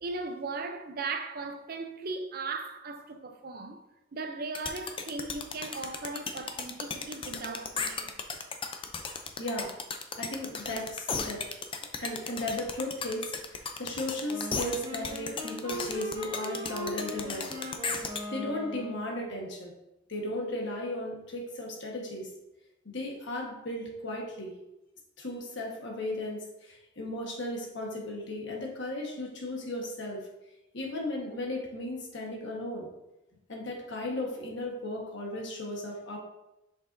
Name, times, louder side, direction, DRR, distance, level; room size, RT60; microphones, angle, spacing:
voice 1, 0.0-3.8 4.1-8.2, right 3 dB, 45° right, 0.5 m, -37 dB
sound 1, 4.5-18.2, left 5 dB, 25° left, 0.4 m, -35 dB
voice 2, 9.4-9.8 10.2-11.4 11.8-17.6 18.3-19.7 20.1-22.3 22.8-24.5 25.2-30.2 30.7-32.9 33.5-36.2, left 1 dB, 60° left, 1.3 m, -36 dB
Wind instrument woodwind instrument, 14.2-19.4, equal, 25° right, 1.8 m, -39 dB
6.6 x 5.6 x 2.6 m
head